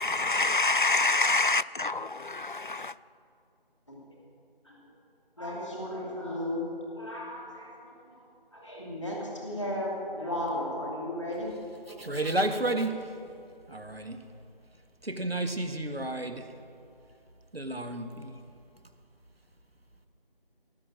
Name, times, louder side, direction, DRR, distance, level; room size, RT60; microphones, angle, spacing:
voice 1, 0.0-3.0, left 3 dB, 55° left, 0.4 m, -26 dB
voice 2, 5.4-8.3 8.5-11.5 11.9-12.2, left 1 dB, 30° left, 2.8 m, -35 dB
voice 3, 11.9-13.1 13.7-14.2 15.0-16.5 17.5-18.3, right 1 dB, 85° right, 1.5 m, -31 dB
18.5 x 6.3 x 7.6 m
figure-of-eight pair, 175°, 30 cm